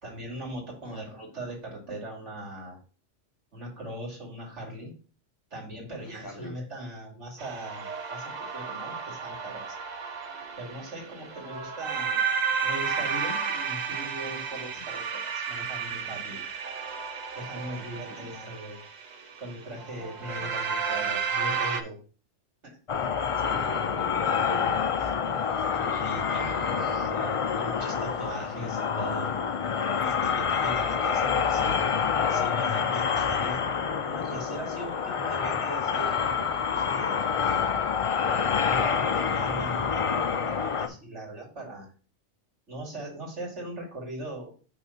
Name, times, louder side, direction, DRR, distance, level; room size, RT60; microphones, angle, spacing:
voice 1, 0.0-2.8 3.5-4.9 5.5-9.6 10.6-12.2 12.6-16.4 17.3-18.8 19.4-22.0 22.6-22.8 23.6-23.7 26.0-29.4 29.8-37.7 38.6-41.9 42.7-44.5, right 1 dB, 75° right, 2.9 m, -40 dB
voice 2, 0.8-1.2 6.0-6.5 17.6-18.3 20.0-20.5 23.3-26.9 28.3-28.7 30.3-30.6, equal, 15° left, 1.2 m, -44 dB
sound 1, 7.4-21.8, right 6 dB, 45° right, 0.7 m, -32 dB
sound 2, 22.9-40.9, left 6 dB, 55° left, 0.3 m, -27 dB
5.9 x 3.7 x 5.5 m
omnidirectional pair, 1.2 m